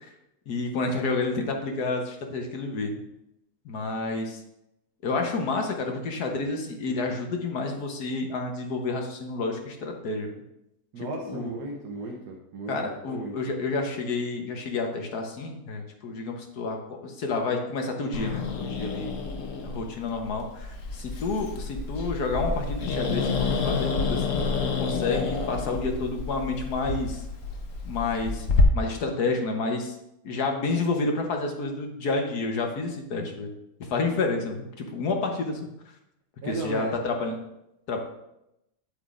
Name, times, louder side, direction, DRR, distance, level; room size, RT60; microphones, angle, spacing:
voice 1, 0.5-3.0 3.6-4.4 5.0-10.4 11.0-11.5 12.7-19.1 19.6-27.2 27.8-28.5 28.7-30.0 30.2-33.5 33.8-35.7 36.4-37.4 37.9-38.0, left 3 dB, 75° left, 3 dB, 1.6 m, -29 dB
voice 2, 10.9-13.3 36.4-36.9, right 2 dB, 80° right, -1 dB, 1.5 m, -35 dB
Growling, 18.1-28.6, left 4 dB, 60° left, 1.2 m, -29 dB
8.6 x 8.2 x 2.5 m, 0.85 s
omnidirectional pair, 1.7 m